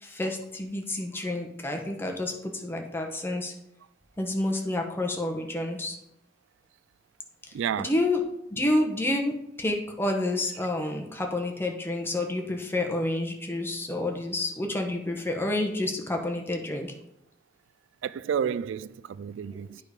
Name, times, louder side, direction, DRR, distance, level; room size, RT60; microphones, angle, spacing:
voice 1, 0.0-3.5 4.2-6.0 7.8-8.2 8.5-16.9 19.5-19.6, left 1 dB, 10° left, 1.1 m, -29 dB
voice 2, 7.5-7.9 18.0-19.8, right 8 dB, 85° right, 0.3 m, -30 dB
9.3 x 4.9 x 5.2 m
head